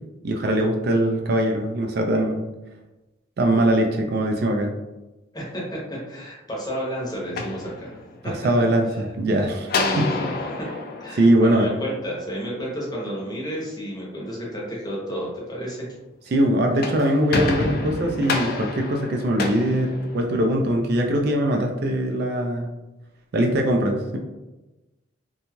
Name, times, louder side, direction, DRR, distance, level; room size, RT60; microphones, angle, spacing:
voice 1, 0.2-2.4 3.4-4.7 8.4-10.1 11.1-11.7 16.3-22.7 23.3-24.2, right 1 dB, 50° right, 2 dB, 0.3 m, -21 dB
voice 2, 5.3-8.0 8.2-8.3 9.8-10.7 11.0-15.9, equal, 20° left, -4 dB, 0.7 m, -31 dB
sound 1, 7.2-8.4 9.7-12.2 16.6-20.6, left 3 dB, 45° left, 0.3 m, -29 dB
2.6 x 2.2 x 3.0 m, 1.1 s
head